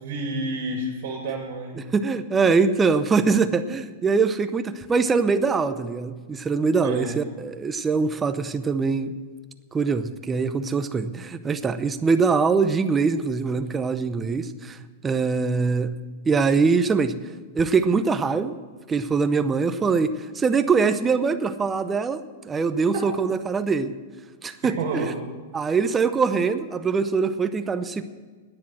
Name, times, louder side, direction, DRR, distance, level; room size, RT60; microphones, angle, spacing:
voice 1, 0.0-1.8 6.8-7.1 22.9-23.1 24.6-25.2, right 2 dB, 65° right, 2 dB, 2.2 m, -29 dB
voice 2, 1.9-9.1 9.7-14.8 15.0-15.9 16.3-17.1 17.5-18.6 18.9-23.9 24.4-25.1 25.5-28.0, right 4 dB, 15° right, 10 dB, 0.7 m, -23 dB
10.0 x 9.9 x 7.6 m, 1.5 s
supercardioid pair, 145°, 0 cm